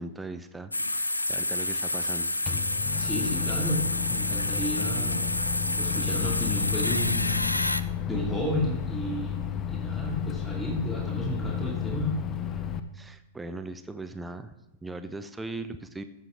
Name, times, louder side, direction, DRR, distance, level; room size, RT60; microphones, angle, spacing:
voice 1, 0.0-2.3 12.9-14.5 14.8-16.0, right 2 dB, 10° right, 9 dB, 0.6 m, -39 dB
sound 1, 0.7-7.8, left 2 dB, 90° left, 0.4 m, -29 dB
Microwave oven, 2.5-12.8, left 9 dB, 25° left, 0.7 m, -32 dB
voice 2, 3.0-5.2 5.8-7.4 7.8-12.2, left 1 dB, 10° left, -3 dB, 2.6 m, -32 dB
14.0 x 7.4 x 3.8 m, 0.94 s
figure-of-eight pair, 100°, 0 cm